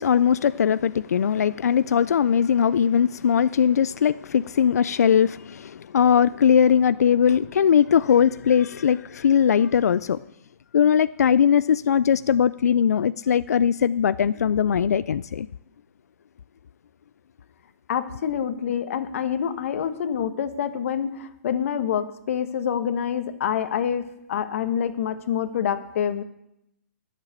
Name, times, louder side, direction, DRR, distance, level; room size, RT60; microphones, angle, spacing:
voice 1, 0.0-10.2 10.7-15.5, left 8 dB, 85° left, 0.3 m, -20 dB
voice 2, 17.9-26.2, left 8 dB, 60° left, 1.2 m, -27 dB
11.0 x 7.4 x 8.2 m
hypercardioid pair, 145°, 8 cm